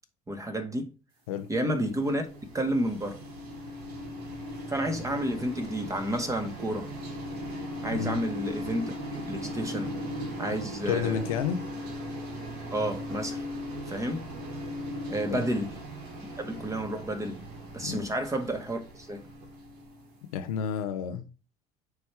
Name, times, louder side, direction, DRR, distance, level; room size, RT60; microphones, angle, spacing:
voice 1, 0.3-0.9 1.5-2.3 2.5-3.2 4.7-6.9 7.8-10.0 10.4-11.3 12.7-13.4 13.9-14.3 15.1-15.8 16.4-17.4 17.7-19.2, right 1 dB, 15° right, 1.9 m, -31 dB
sound 1, 1.4-20.4, equal, 55° right, 2.3 m, -39 dB
voice 2, 10.9-11.6 15.3-15.4 17.8-18.0 20.3-21.3, left 8 dB, 70° left, 0.8 m, -30 dB
9.5 x 3.4 x 4.4 m
figure-of-eight pair, 60°, 19 cm